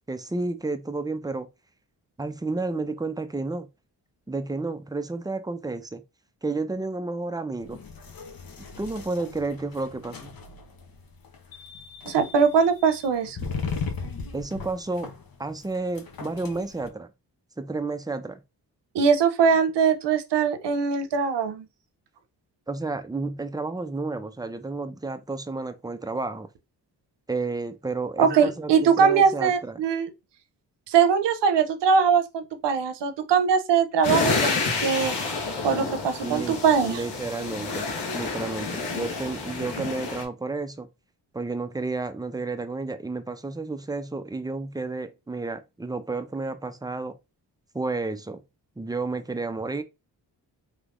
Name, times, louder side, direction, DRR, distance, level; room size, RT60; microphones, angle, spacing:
voice 1, 0.1-1.5 2.2-3.7 4.3-6.0 6.4-7.8 8.8-10.4 14.3-15.1 15.4-17.1 17.6-18.4 22.7-26.5 27.3-28.7 29.0-29.8 36.2-40.9 41.3-47.2 47.7-48.4 48.8-49.8, right 3 dB, 10° right, 0.5 m, -31 dB
sound 1, 7.6-16.9, left 5 dB, 55° left, 0.9 m, -38 dB
voice 2, 12.0-13.4 18.9-21.7 28.2-30.1 30.9-35.1 35.6-37.0, right 6 dB, 75° right, 0.8 m, -21 dB
sound 2, 34.0-40.2, left 4 dB, 70° left, 1.3 m, -29 dB
3.4 x 3.0 x 2.5 m
cardioid pair, 55°, 42 cm